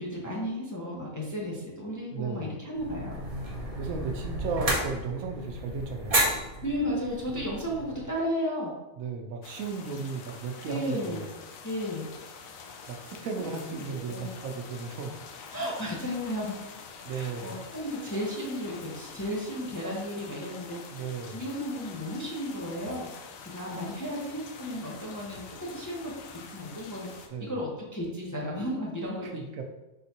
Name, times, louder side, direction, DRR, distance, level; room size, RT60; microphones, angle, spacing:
voice 1, 0.0-3.2 6.6-8.7 10.6-11.3 11.6-12.1 13.4-13.5 13.9-14.3 15.5-16.6 17.0-23.1 23.4-26.1 26.5-27.1 27.4-29.6, equal, 20° left, -4 dB, 0.6 m, -34 dB
voice 2, 2.1-2.5 3.8-6.4 9.0-11.3 12.9-15.1 17.0-17.6 20.9-21.4 27.3-27.5 29.2-29.6, right 4 dB, 85° right, 3 dB, 1.1 m, -35 dB
sound 1, 2.7-8.1, right 1 dB, 30° right, 0.8 m, -32 dB
sound 2, 9.4-27.3, left 5 dB, 80° left, 1.0 m, -46 dB
4.3 x 3.8 x 2.9 m, 1.0 s
omnidirectional pair, 1.4 m